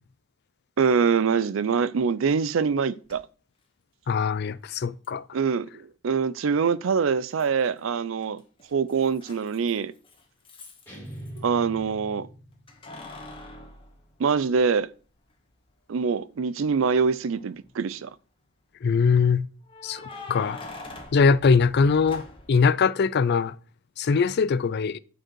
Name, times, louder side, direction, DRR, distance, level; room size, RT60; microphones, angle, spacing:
voice 1, 0.8-3.2 5.3-5.7 6.0-8.4 8.7-9.9 11.4-12.3 14.2-14.9 15.9-18.1, right 5 dB, 75° right, 0.4 m, -24 dB
Keys jangling, 3.1-3.2 5.0-5.1 7.4-7.9 8.2-11.4 12.7-14.8 15.3-15.4 17.2-17.7 19.7-22.6, left 2 dB, 25° left, 1.5 m, -44 dB
voice 2, 4.1-5.2 18.8-19.5 19.8-20.6 21.1-22.2 22.5-23.5 24.0-25.0, left 5 dB, 55° left, 0.4 m, -22 dB
sound 1, 10.9-12.9, right 1 dB, 10° left, 3.2 m, -42 dB
8.8 x 5.0 x 4.5 m
head